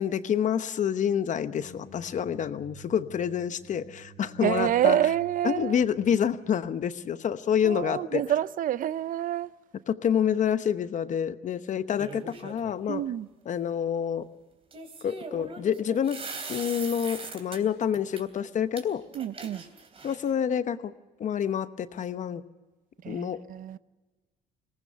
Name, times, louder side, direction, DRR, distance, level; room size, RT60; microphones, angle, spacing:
voice 1, 0.0-5.0 5.4-8.2 9.9-13.0 13.4-14.3 15.0-16.2 16.5-19.0 20.0-20.9 21.2-22.4 23.1-23.4, left 8 dB, 45° left, 1.0 m, -28 dB
sound 1, 1.2-7.2, right 4 dB, 85° left, 3.8 m, -51 dB
voice 2, 4.4-5.8 7.6-9.5 12.9-13.3 19.1-19.6 23.0-23.8, right 11 dB, 55° right, 0.6 m, -27 dB
sound 2, 12.0-12.7 14.7-17.6 17.9-18.2 18.8-18.9 19.1-20.3, right 3 dB, 35° right, 3.1 m, -40 dB
21.5 x 19.0 x 6.9 m
cardioid pair, 110°, 17 cm